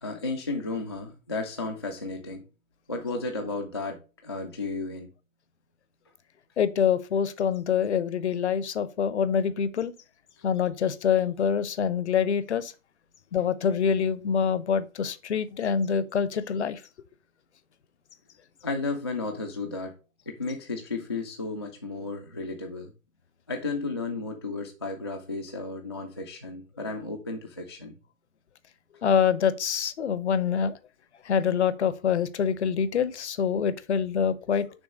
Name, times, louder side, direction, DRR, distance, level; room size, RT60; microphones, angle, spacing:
voice 1, 0.0-2.4 2.9-5.1 18.6-19.9 20.3-22.9 23.5-27.9, left 3 dB, 20° left, 0.3 m, -33 dB
voice 2, 6.6-9.9 10.4-12.7 13.3-16.8 29.0-30.7 31.3-34.7, left 7 dB, 55° left, 0.7 m, -25 dB
6.2 x 3.5 x 5.0 m
figure-of-eight pair, 130°, 41 cm